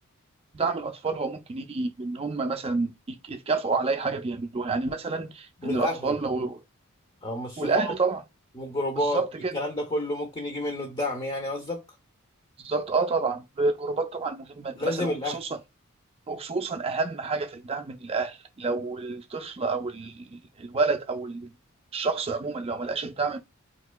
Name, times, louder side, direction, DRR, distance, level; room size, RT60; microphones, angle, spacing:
voice 1, 0.5-6.6 7.6-8.2 9.0-9.6 12.6-15.6 16.3-21.5 21.9-23.4, right 4 dB, 25° right, 0.4 m, -29 dB
voice 2, 5.6-6.2 7.2-7.9 8.6-9.2 9.5-11.8 14.8-15.4, left 1 dB, 25° left, 0.6 m, -30 dB
4.2 x 2.8 x 2.2 m
head